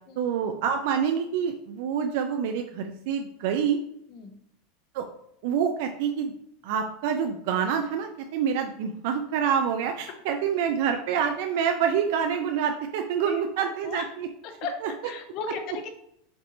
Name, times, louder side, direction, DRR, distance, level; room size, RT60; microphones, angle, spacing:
voice 1, 0.2-3.8 4.9-5.1 5.4-6.3 6.6-14.3 14.8-14.9, right 7 dB, 65° right, 5 dB, 0.4 m, -27 dB
voice 2, 13.2-14.1 14.4-15.9, left 5 dB, 45° left, 5 dB, 0.8 m, -37 dB
5.2 x 2.6 x 3.0 m, 0.73 s
supercardioid pair, 145°, 0 cm